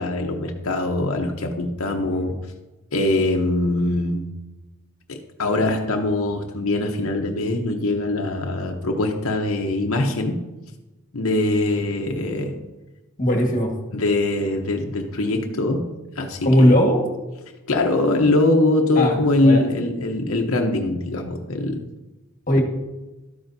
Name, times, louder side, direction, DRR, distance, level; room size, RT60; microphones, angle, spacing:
voice 1, 0.0-2.4 2.9-4.3 5.1-10.4 11.1-12.6 13.9-16.8 17.7-21.9, left 2 dB, 85° left, 2 dB, 0.9 m, -22 dB
voice 2, 13.2-13.7 16.4-17.0 19.0-19.2 19.4-19.6 22.5-22.6, equal, 40° left, 2 dB, 1.6 m, -17 dB
12.5 x 8.9 x 2.7 m, 1.1 s
head